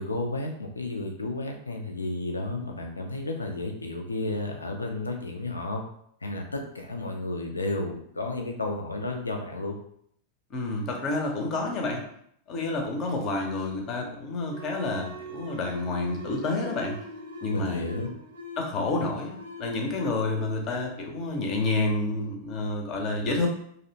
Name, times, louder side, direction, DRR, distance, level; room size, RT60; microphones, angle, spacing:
voice 1, 0.0-5.8 6.2-9.8 17.5-18.1, left 2 dB, 80° left, 2 dB, 0.4 m, -32 dB
voice 2, 10.5-12.0 12.5-17.0 17.4-17.8 18.6-23.5, left 2 dB, 35° left, 2 dB, 0.6 m, -29 dB
sound 1, 14.4-21.7, equal, 70° right, 0.6 m, -43 dB
2.7 x 2.0 x 2.7 m, 0.67 s
figure-of-eight pair, 90°, 0 cm